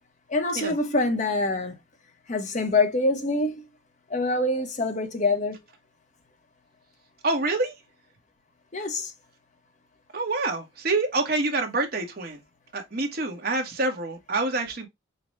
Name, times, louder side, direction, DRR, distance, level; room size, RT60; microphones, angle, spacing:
voice 1, 0.3-1.8 2.3-3.6 4.1-5.6 8.7-9.1, left 2 dB, 40° left, 1.0 m, -25 dB
voice 2, 7.2-7.7 10.1-12.4 12.7-14.9, right 3 dB, 50° right, 1.2 m, -27 dB
5.7 x 2.3 x 3.1 m
head